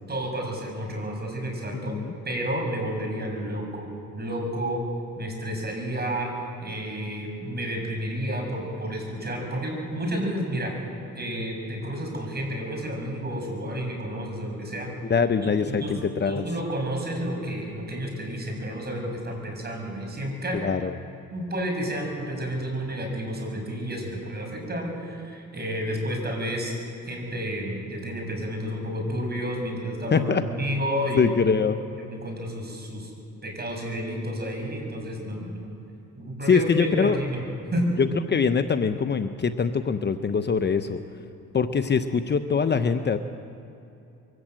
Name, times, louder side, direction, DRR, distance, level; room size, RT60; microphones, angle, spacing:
voice 1, 0.1-2.0 2.2-4.8 5.2-6.3 6.6-10.7 11.1-14.9 15.4-16.0 16.3-20.7 21.3-26.7 27.1-31.2 32.0-33.1 33.4-35.7 36.1-37.4 37.7-37.9, equal, 35° right, 1 dB, 6.5 m, -31 dB
voice 2, 1.7-2.1 15.1-16.4 20.5-20.9 30.1-30.4 31.2-31.8 36.5-37.2 38.0-41.0 41.5-43.2, left 5 dB, 35° left, 9 dB, 0.9 m, -23 dB
23.0 x 14.0 x 9.0 m, 2.7 s
cardioid pair, 90°, 30 cm